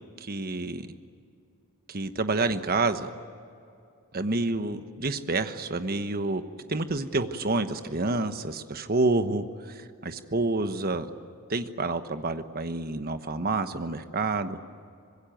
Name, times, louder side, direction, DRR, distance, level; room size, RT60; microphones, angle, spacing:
voice 1, 0.2-0.9 1.9-3.1 4.1-6.4 6.7-11.1 11.5-14.6, right 3 dB, 45° right, 9 dB, 1.2 m, -28 dB
25.0 x 21.0 x 9.2 m, 2.5 s
head